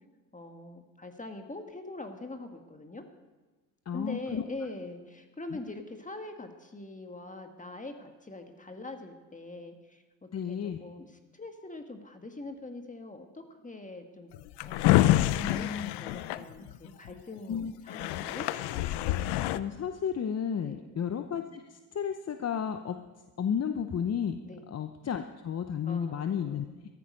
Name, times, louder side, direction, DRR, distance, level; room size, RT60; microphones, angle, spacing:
voice 1, 0.3-3.0 3.9-11.1 11.3-14.3 14.6-18.5 20.6-20.9 24.4-24.6 25.9-26.8, left 2 dB, 20° left, 5 dB, 1.4 m, -43 dB
voice 2, 3.9-4.4 5.5-5.6 10.3-10.8 15.4-16.0 17.5-17.7 19.1-23.0 23.4-24.4 24.7-26.7, left 8 dB, 40° left, 8 dB, 0.8 m, -33 dB
Drawer open or close, 14.3-17.1 17.6-17.7 17.9-19.6, left 15 dB, 85° left, 0.6 m, -27 dB
13.5 x 13.5 x 5.3 m, 1.2 s
supercardioid pair, 75°, 39 cm